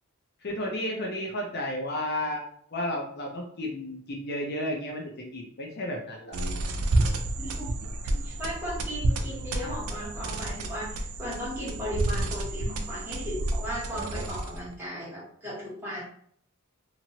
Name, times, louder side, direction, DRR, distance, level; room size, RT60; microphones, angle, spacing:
voice 1, 0.4-2.4 2.7-6.4, left 1 dB, 50° left, 0 dB, 0.6 m, -32 dB
sound 1, 6.3-14.7, right 2 dB, 85° right, 0.5 m, -30 dB
voice 2, 7.4-7.7 8.2-16.0, equal, 10° right, -7 dB, 1.3 m, -36 dB
2.9 x 2.5 x 2.8 m, 0.63 s
head